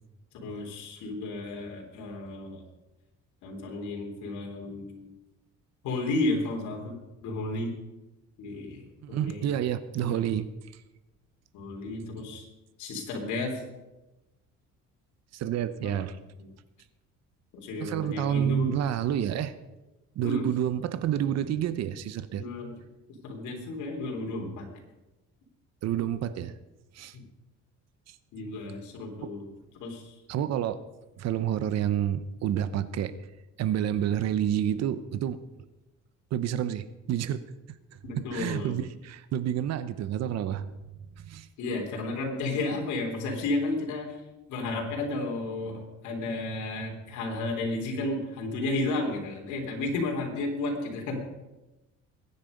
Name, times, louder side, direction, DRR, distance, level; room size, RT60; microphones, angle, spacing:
voice 1, 0.3-2.6 3.4-5.1 5.8-6.9 7.2-7.7 8.4-8.8 9.1-9.5 10.0-10.2 11.5-12.4 12.8-13.6 15.8-16.1 16.4-16.5 17.5-18.8 20.2-20.5 22.4-22.7 23.2-24.7 28.3-29.5 29.8-30.1 38.0-38.7 41.6-44.2 44.5-51.2, left 2 dB, 75° left, 0 dB, 3.7 m, -32 dB
voice 2, 9.0-10.5 15.3-16.2 17.8-19.5 20.2-22.4 25.8-26.5 26.9-27.2 28.1-28.2 29.2-29.3 30.3-30.8 31.2-33.1 33.6-35.4 36.3-37.4 38.3-40.7 41.2-41.5, right 10 dB, 60° right, 14 dB, 0.9 m, -29 dB
22.0 x 9.8 x 5.3 m, 1.0 s
cardioid pair, 135°, 30 cm